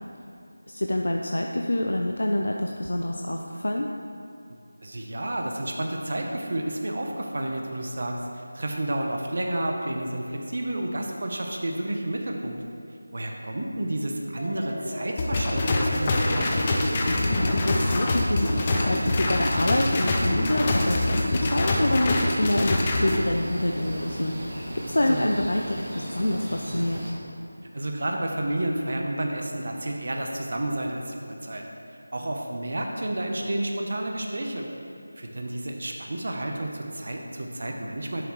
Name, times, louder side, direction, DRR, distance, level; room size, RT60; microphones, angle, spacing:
voice 1, 0.7-3.9 17.1-24.6 24.9-27.1, left 1 dB, 80° left, 1 dB, 0.6 m, -26 dB
voice 2, 4.8-12.6 13.1-16.6 25.1-25.2 27.7-31.6 32.1-34.7 35.2-38.2, right 1 dB, 40° right, 1 dB, 0.8 m, -30 dB
sound 1, 14.4-21.8, equal, 55° left, 2.0 m, -35 dB
sound 2, 15.2-23.2, left 2 dB, 15° left, 0.4 m, -25 dB
sound 3, 15.9-27.1, equal, 25° right, 1.2 m, -36 dB
11.5 x 7.1 x 3.1 m, 2.7 s
figure-of-eight pair, 180°, 0 cm